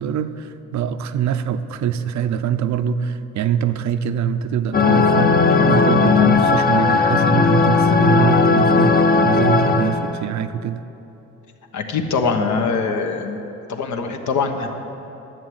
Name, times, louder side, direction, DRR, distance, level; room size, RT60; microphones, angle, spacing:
voice 1, 0.0-10.8, right 8 dB, 65° right, 11 dB, 0.6 m, -24 dB
sound 1, 4.7-10.1, left 4 dB, 30° left, 0.8 m, -16 dB
voice 2, 11.7-13.4 13.7-14.7, left 4 dB, 70° left, 5 dB, 1.2 m, -22 dB
11.0 x 7.9 x 7.9 m, 2.9 s
cardioid pair, 90°, 30 cm